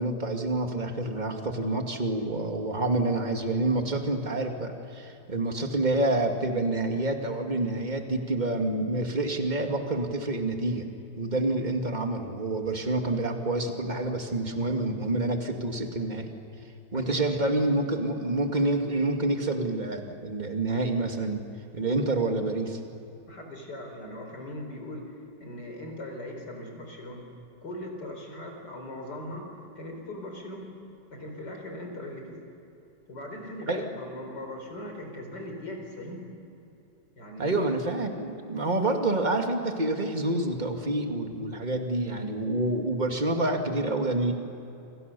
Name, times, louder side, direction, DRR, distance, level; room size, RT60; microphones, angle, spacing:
voice 1, 0.0-10.9 11.2-16.3 16.9-21.4 21.7-22.8 33.7-33.8 37.4-44.3, right 2 dB, 25° right, 4 dB, 2.3 m, -28 dB
voice 2, 16.9-17.6 23.3-25.1 25.4-27.3 27.6-30.7 31.1-32.4 33.1-36.3 37.2-37.7, left 1 dB, 70° left, 2 dB, 5.1 m, -39 dB
29.0 x 26.0 x 6.9 m, 2.8 s
omnidirectional pair, 1.9 m